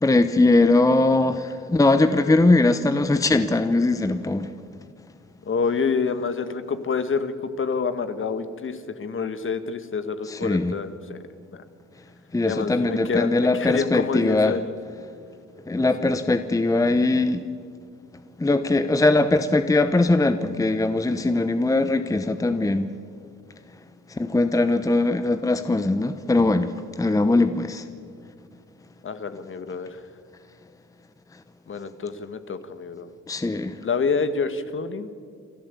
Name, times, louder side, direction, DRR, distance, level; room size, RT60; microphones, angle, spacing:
voice 1, 0.0-4.5 10.3-10.7 12.3-14.6 15.7-17.5 18.4-22.9 24.1-27.9 33.3-33.8, left 2 dB, 10° left, 10 dB, 0.8 m, -21 dB
voice 2, 5.4-11.2 11.5-11.6 12.4-14.7 16.0-16.1 29.0-30.0 31.7-33.1 33.8-35.1, left 5 dB, 40° left, 11 dB, 1.6 m, -27 dB
27.5 x 12.5 x 8.3 m, 2.2 s
cardioid pair, 90°, 30 cm